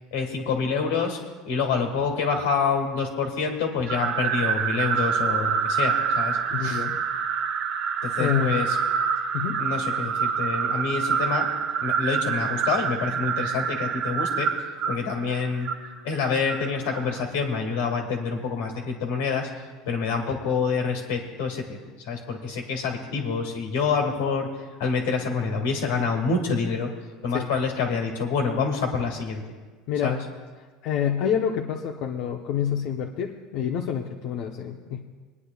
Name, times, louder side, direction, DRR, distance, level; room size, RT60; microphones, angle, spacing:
voice 1, 0.1-1.2 1.5-6.8 8.0-8.8 9.6-11.5 11.8-14.5 14.9-15.7 16.0-19.5 19.9-21.8 22.0-24.5 24.8-26.9 27.2-29.4 30.0-30.2, left 5 dB, 90° left, 1 dB, 2.1 m, -27 dB
sound 1, 3.9-17.2, right 7 dB, 50° right, 0.8 m, -27 dB
voice 2, 6.5-6.9 8.2-8.6 9.3-9.6 27.3-27.5 29.9-30.2 30.8-35.0, left 8 dB, 60° left, 1 dB, 0.8 m, -27 dB
28.0 x 9.8 x 2.4 m, 1.4 s
supercardioid pair, 130°, 0 cm